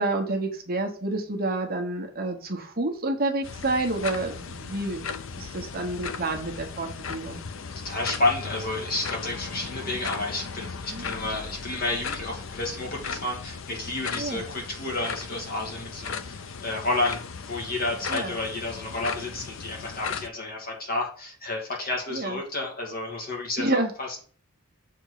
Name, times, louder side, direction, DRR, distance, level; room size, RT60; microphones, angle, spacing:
voice 1, 0.0-5.1 5.4-7.4 10.9-11.0 14.1-14.4 18.1-18.4 22.1-22.4 23.6-23.9, right 2 dB, 45° right, 3 dB, 1.2 m, -29 dB
sound 1, 3.4-20.3, left 5 dB, 65° left, 0.6 m, -37 dB
voice 2, 7.8-24.2, left 2 dB, 45° left, 0 dB, 2.1 m, -31 dB
6.7 x 4.5 x 5.0 m, 0.43 s
head